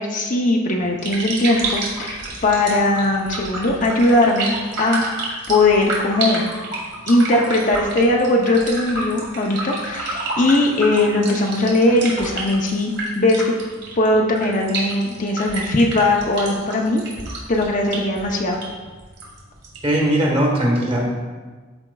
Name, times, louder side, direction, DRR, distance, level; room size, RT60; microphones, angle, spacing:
voice 1, 0.0-5.0 5.5-6.5 7.1-13.5 14.0-17.0 17.5-18.6, left 2 dB, 40° left, 0 dB, 0.6 m, -19 dB
sound 1, 0.8-20.0, right 2 dB, 55° right, 1.7 m, -30 dB
voice 2, 19.8-21.1, right 1 dB, 25° right, -2 dB, 1.3 m, -19 dB
13.0 x 4.4 x 2.3 m, 1.4 s
head